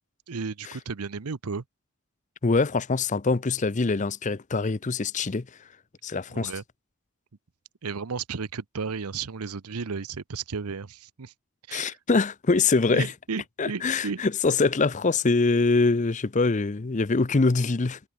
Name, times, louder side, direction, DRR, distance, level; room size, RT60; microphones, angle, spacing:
voice 1, 0.3-1.6 6.3-6.6 7.8-11.3 11.7-12.0 12.9-14.2, right 5 dB, 90° right, 0.8 m, -33 dB
voice 2, 2.4-5.5 6.0-6.5 11.7-13.1 13.6-18.0, left 3 dB, 35° left, 0.6 m, -24 dB
head